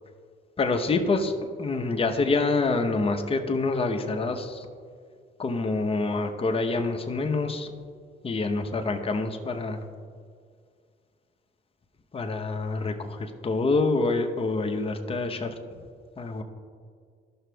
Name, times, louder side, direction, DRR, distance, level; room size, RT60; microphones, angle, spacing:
voice 1, 0.6-1.3 1.6-4.7 5.4-7.7 8.2-9.8 12.1-15.5 16.2-16.4, left 3 dB, 30° left, 4 dB, 0.8 m, -26 dB
13.5 x 6.0 x 2.3 m, 2.1 s
cardioid pair, 90°, 20 cm